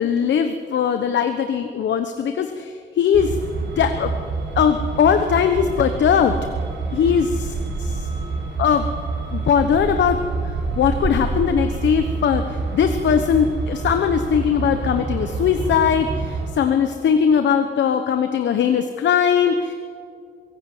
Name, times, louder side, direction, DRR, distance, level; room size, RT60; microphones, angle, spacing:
voice 1, 0.0-4.1 4.5-6.4 6.9-7.3 7.8-8.1 8.6-8.9 9.3-10.2 10.8-19.7, left 7 dB, 75° left, 8 dB, 1.0 m, -20 dB
Truck, 3.1-16.5, right 3 dB, 75° right, 3.6 m, -27 dB
23.5 x 16.0 x 7.9 m, 2.3 s
wide cardioid pair, 160°, 19 cm